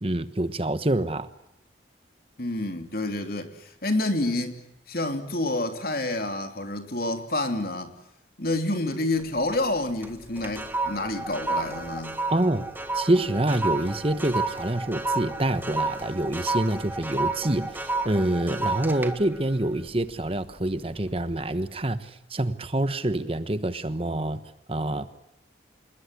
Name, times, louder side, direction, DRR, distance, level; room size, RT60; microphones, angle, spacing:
voice 1, 0.0-1.3 12.3-12.7 12.9-24.4 24.7-25.1, right 1 dB, 30° right, 1.2 m, -26 dB
voice 2, 2.4-7.9 8.4-12.2, left 2 dB, 55° left, 3.1 m, -28 dB
sound 1, 9.2-9.7 10.0-20.6 21.0-21.3, right 3 dB, 10° right, 1.8 m, -31 dB
27.5 x 21.5 x 9.8 m
head